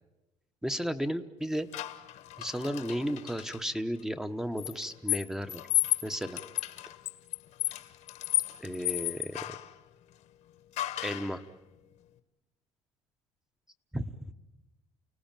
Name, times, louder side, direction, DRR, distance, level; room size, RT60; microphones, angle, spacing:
voice 1, 0.6-1.7 2.4-5.6 6.0-6.4 8.6-9.6 11.0-11.4 13.9-14.3, equal, 5° right, 10 dB, 1.0 m, -34 dB
sound 1, 1.7-3.6 4.6-9.7 10.8-11.4, left 17 dB, 70° left, 1.5 m, -33 dB
29.5 x 18.0 x 9.0 m, 1.0 s
cardioid pair, 135°, 13 cm